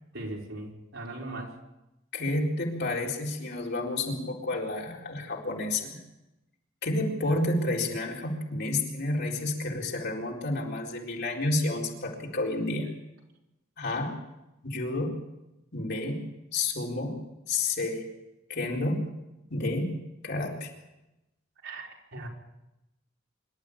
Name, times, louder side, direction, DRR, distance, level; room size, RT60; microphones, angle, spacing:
voice 1, 0.1-1.5 21.6-22.3, right 2 dB, 70° right, -1 dB, 4.7 m, -39 dB
voice 2, 2.1-6.0 6.8-12.9 13.8-14.2 14.6-15.2 15.7-17.2 17.5-18.1 18.5-19.1 19.5-20.0 20.2-20.7, left 2 dB, 55° left, -1 dB, 4.2 m, -30 dB
25.5 x 12.5 x 8.6 m, 0.95 s
head